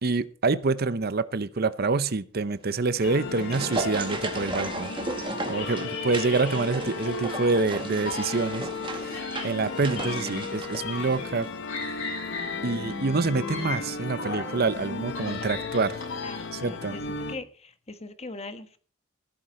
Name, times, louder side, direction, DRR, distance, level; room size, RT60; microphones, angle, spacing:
voice 1, 0.0-4.9 5.5-11.5 12.6-16.0 16.5-16.9, right 3 dB, 50° right, 15 dB, 0.7 m, -27 dB
sound 1, 2.9-11.6 11.8-11.9, right 2 dB, 25° right, 2.0 m, -35 dB
sound 2, 3.0-5.1 5.5-7.7 8.0-11.4 11.7-14.6 15.0-16.7, left 4 dB, 80° left, 7.1 m, -38 dB
sound 3, 3.0-17.4, left 4 dB, 60° left, 1.3 m, -35 dB
voice 2, 6.5-7.0 16.2-17.0 17.3-18.8, left 3 dB, 30° left, 10 dB, 1.3 m, -41 dB
15.5 x 13.0 x 4.3 m, 0.42 s
head